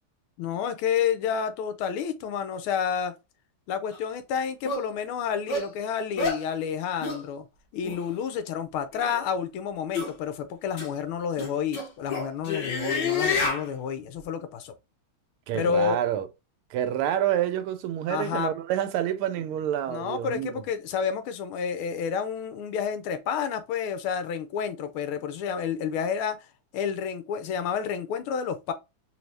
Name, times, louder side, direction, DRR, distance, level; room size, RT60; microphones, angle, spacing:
voice 1, 0.4-3.1 3.7-7.5 7.7-14.7 15.5-16.0 18.1-18.5 19.9-26.4 26.7-28.7, left 7 dB, 80° left, 1.5 m, -30 dB
sound 1, 3.9-4.0 4.7-4.8 5.5-5.7 6.2-6.4 7.0-7.2 7.8-8.0 8.9-9.2 9.9-10.1 10.8-10.9 11.4-13.6, left 4 dB, 55° left, 1.7 m, -28 dB
voice 2, 15.5-16.3 16.7-20.6, right 11 dB, 80° right, 1.4 m, -28 dB
4.2 x 2.6 x 3.2 m
omnidirectional pair, 2.4 m